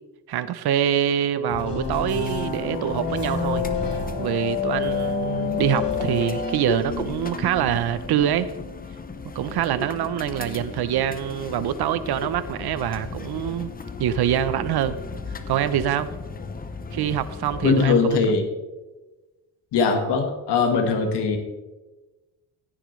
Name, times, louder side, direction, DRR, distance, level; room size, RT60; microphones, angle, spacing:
voice 1, 0.3-3.6 4.2-8.5 9.3-13.7 14.0-15.0 15.3-16.1 16.9-18.3, right 10 dB, 70° right, 14 dB, 0.8 m, -25 dB
sound 1, 1.5-6.5, left 6 dB, 60° left, 4.1 m, -28 dB
sound 2, 1.9-17.9, left 4 dB, 20° left, 0.7 m, -34 dB
voice 2, 17.6-18.4 19.7-21.4, left 4 dB, 90° left, 3 dB, 1.6 m, -20 dB
15.5 x 10.0 x 3.2 m, 1.1 s
cardioid pair, 125°, 40 cm